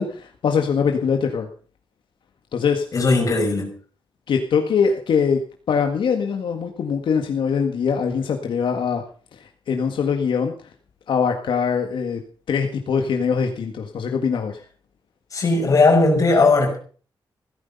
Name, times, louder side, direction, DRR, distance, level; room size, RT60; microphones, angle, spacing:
voice 1, 0.0-1.5 2.5-2.8 4.3-5.4 5.7-9.0 9.3-10.7 11.1-12.2 12.5-14.6, left 6 dB, 80° left, 1.8 m, -22 dB
voice 2, 2.9-3.7 15.3-16.8, left 3 dB, 40° left, 5.7 m, -17 dB
16.0 x 13.5 x 5.5 m
wide cardioid pair, 175°, 8 cm